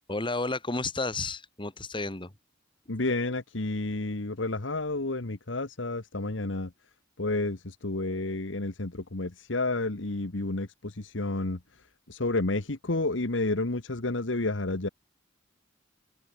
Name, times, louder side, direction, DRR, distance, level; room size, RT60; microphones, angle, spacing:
voice 1, 0.1-2.3, left 3 dB, 25° left, 2.3 m, -32 dB
voice 2, 2.9-6.7 7.2-11.6 12.1-14.9, left 2 dB, 70° left, 1.5 m, -30 dB
open air
head